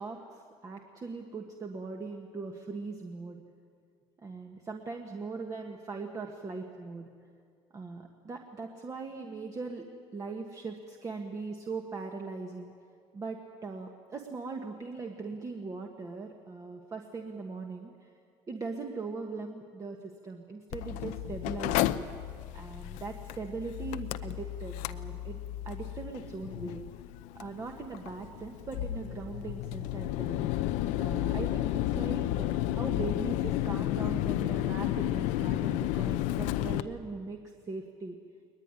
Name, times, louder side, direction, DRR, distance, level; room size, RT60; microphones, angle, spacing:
voice 1, 0.0-3.4 4.2-7.1 7.7-9.9 10.1-12.7 13.1-18.1 18.5-20.0 20.2-22.0 22.5-25.4 25.6-26.8 27.3-30.5 31.0-37.4 37.7-38.2, right 4 dB, 25° right, 3 dB, 1.5 m, -40 dB
Mechanical fan, 20.7-36.8, left 14 dB, 80° left, 0.7 m, -32 dB
21.0 x 20.5 x 9.8 m, 2.3 s
cardioid pair, 130°, 13 cm